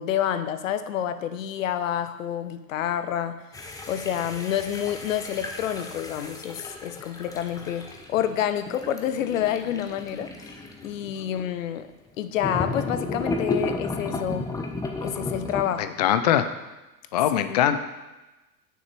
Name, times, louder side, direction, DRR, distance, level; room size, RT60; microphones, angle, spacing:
voice 1, 0.0-3.4 3.9-11.9 12.2-14.5 15.0-16.0 17.5-17.6, left 10 dB, 55° left, 11 dB, 0.8 m, -28 dB
sound 1, 3.5-11.5 12.4-15.6, left 3 dB, 5° left, 0.7 m, -33 dB
voice 2, 15.8-16.5 17.1-17.8, left 10 dB, 30° left, 11 dB, 0.4 m, -22 dB
9.1 x 6.7 x 4.6 m, 1.1 s
figure-of-eight pair, 95°, 48 cm